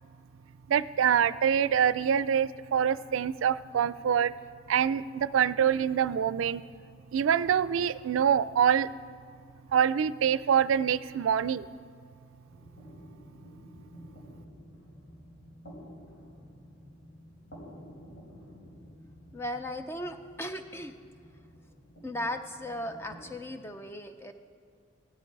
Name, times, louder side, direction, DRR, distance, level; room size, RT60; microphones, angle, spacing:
voice 1, 0.7-4.3 4.7-6.6 7.1-8.9 9.7-11.7, right 8 dB, 90° right, 17 dB, 0.3 m, -25 dB
sound 1, 12.4-23.3, equal, 80° left, 4.7 m, -51 dB
voice 2, 19.3-20.9 22.0-24.3, left 1 dB, 10° left, 7 dB, 0.5 m, -37 dB
16.0 x 13.0 x 4.7 m, 2.2 s
head